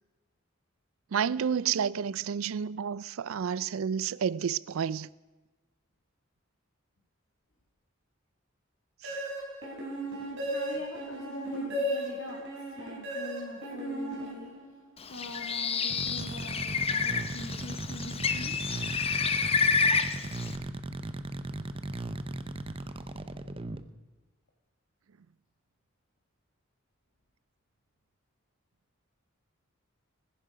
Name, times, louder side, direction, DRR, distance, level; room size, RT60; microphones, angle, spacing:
voice 1, 1.1-5.1 9.0-9.2, right 7 dB, 90° right, 0.4 m, -30 dB
sound 1, 9.0-14.9, right 1 dB, 65° right, 3.9 m, -35 dB
voice 2, 9.9-14.5 15.1-18.8, left 2 dB, 75° left, 2.1 m, -43 dB
Bird, 15.0-20.6, left 5 dB, 30° left, 0.9 m, -29 dB
sound 2, 15.9-23.8, right 2 dB, 25° right, 0.8 m, -37 dB
20.5 x 10.5 x 5.0 m
head